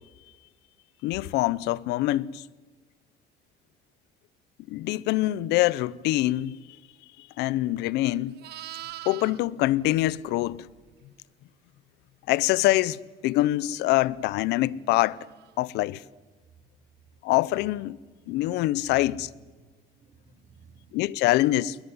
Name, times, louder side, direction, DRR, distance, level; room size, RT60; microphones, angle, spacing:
voice 1, 1.0-2.4 4.7-6.6 7.4-8.4 9.1-10.7 12.3-15.2 15.6-16.0 17.2-18.0 18.3-19.3 20.9-21.8, left 16 dB, 90° left, 0.7 m, -24 dB
Livestock farm animals working animals, 7.7-11.0 15.3-15.6, right 15 dB, 75° right, 1.0 m, -44 dB
voice 2, 18.2-21.2, right 4 dB, 50° right, 5.1 m, -55 dB
21.5 x 19.5 x 9.6 m
cardioid pair, 110°, 17 cm